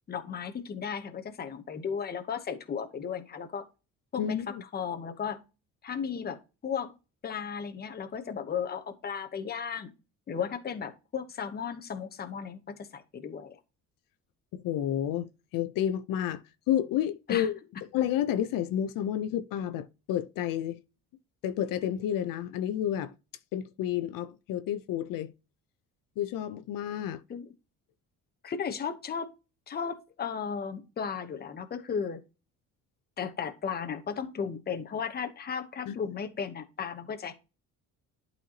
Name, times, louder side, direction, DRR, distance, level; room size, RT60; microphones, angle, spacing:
voice 1, 0.1-3.7 4.1-5.4 5.8-6.9 7.2-9.9 10.3-13.6 17.3-17.5 27.3-27.5 28.4-29.3 29.7-32.2 33.2-37.3, left 7 dB, 30° left, 0.9 m, -35 dB
voice 2, 4.2-4.6 14.5-16.4 16.7-17.6 17.9-20.8 21.4-23.1 23.5-25.3 26.2-27.2 35.9-36.0, left 11 dB, 75° left, 0.7 m, -30 dB
11.5 x 4.3 x 2.9 m
cardioid pair, 160°, 33 cm